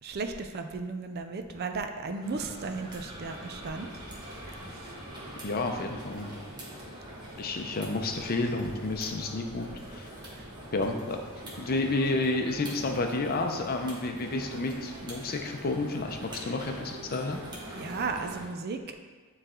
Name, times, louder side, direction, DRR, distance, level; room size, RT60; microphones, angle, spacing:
voice 1, 0.0-3.9 10.4-10.5 17.7-19.0, right 4 dB, 50° right, 6 dB, 0.5 m, -35 dB
sound 1, 2.2-18.5, equal, 20° right, 1.2 m, -43 dB
voice 2, 5.4-6.3 7.4-10.1 10.7-11.2 11.6-17.4, left 2 dB, 45° left, 4 dB, 0.6 m, -30 dB
9.2 x 3.2 x 3.7 m, 1.4 s
head